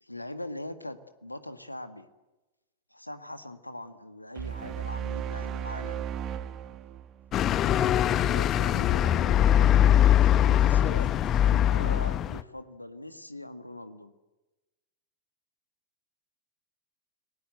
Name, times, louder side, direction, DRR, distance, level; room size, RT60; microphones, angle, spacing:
voice 1, 0.0-2.1 2.9-6.1 8.1-14.1, left 1 dB, 85° left, 11 dB, 1.7 m, -41 dB
sound 1, 4.4-7.7, right 9 dB, 35° right, 1.6 m, -35 dB
sound 2, 7.3-12.4, left 11 dB, 30° left, 0.8 m, -22 dB
29.5 x 20.0 x 7.9 m, 1.1 s
figure-of-eight pair, 90°, 0 cm